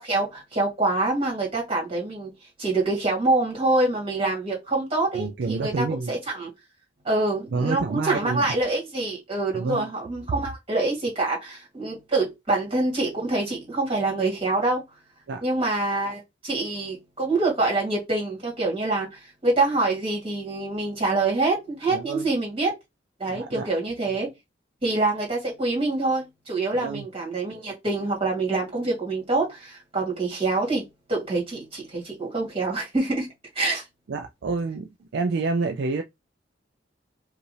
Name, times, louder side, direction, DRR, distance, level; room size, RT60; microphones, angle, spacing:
voice 1, 0.0-2.3 2.6-6.5 7.0-14.8 15.4-22.7 23.2-24.3 24.8-33.3 33.6-33.8, right 2 dB, 30° right, 2.2 m, -26 dB
voice 2, 5.1-6.2 7.5-8.5 9.5-9.9 15.3-15.4 21.9-22.3 23.4-23.7 26.7-27.1 34.1-36.0, right 4 dB, 60° right, 0.4 m, -28 dB
5.2 x 2.5 x 3.3 m
head